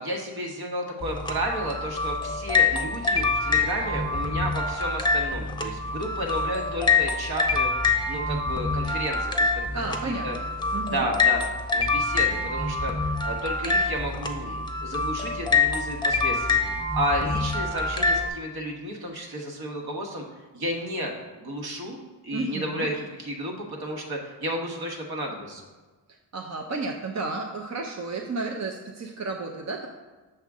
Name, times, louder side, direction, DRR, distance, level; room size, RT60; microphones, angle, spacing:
voice 1, 0.0-7.7 8.1-10.4 10.8-11.4 11.7-20.2 20.5-25.6, equal, 60° right, 1 dB, 1.5 m, -32 dB
sound 1, 1.0-18.3, left 4 dB, 10° left, 0.8 m, -26 dB
voice 2, 9.7-10.5 10.7-11.1 22.3-22.9 26.3-29.9, right 3 dB, 40° right, 2 dB, 0.7 m, -32 dB
6.6 x 5.7 x 3.6 m, 1.3 s
cardioid pair, 80°, 43 cm